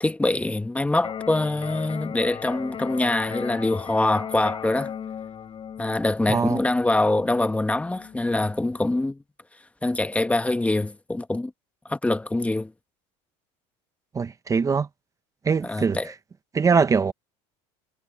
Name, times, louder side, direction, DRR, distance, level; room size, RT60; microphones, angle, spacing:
voice 1, 0.0-4.9 5.8-9.2 9.8-11.5 11.9-12.7 15.6-16.1, left 2 dB, 10° left, 1.2 m, -24 dB
Electric guitar, 1.0-9.0, left 8 dB, 35° left, 7.0 m, -37 dB
voice 2, 6.3-6.6 14.1-14.9 15.4-16.0 16.5-17.1, right 5 dB, 20° right, 0.8 m, -22 dB
supercardioid pair, 115°, 15 cm